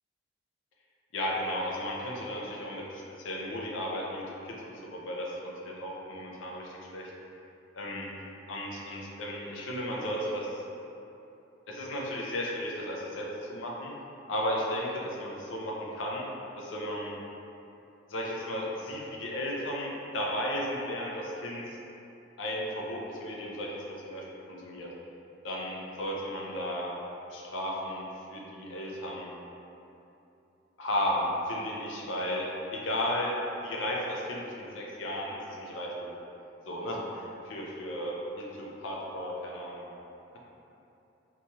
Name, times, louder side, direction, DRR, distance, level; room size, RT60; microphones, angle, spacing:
voice 1, 1.1-2.8 3.2-7.1 7.7-8.1 8.5-10.6 11.7-13.9 14.3-16.2 16.6-17.1 18.1-21.6 22.4-24.9 25.4-26.9 27.3-28.0 28.3-29.3 30.8-33.4 33.6-36.2 36.6-39.9, equal, 80° left, -3 dB, 0.5 m, -34 dB
2.8 x 2.3 x 2.9 m, 2.8 s
head